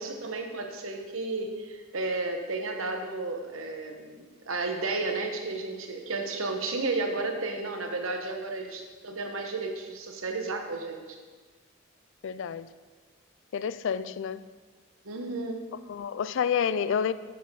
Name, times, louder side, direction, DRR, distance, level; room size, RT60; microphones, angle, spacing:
voice 1, 0.0-11.2 15.0-15.6, right 3 dB, 80° right, 4 dB, 1.1 m, -33 dB
voice 2, 12.2-12.7 13.5-14.4 15.9-17.1, left 7 dB, 65° left, 15 dB, 0.4 m, -29 dB
7.5 x 6.8 x 5.5 m, 1.4 s
head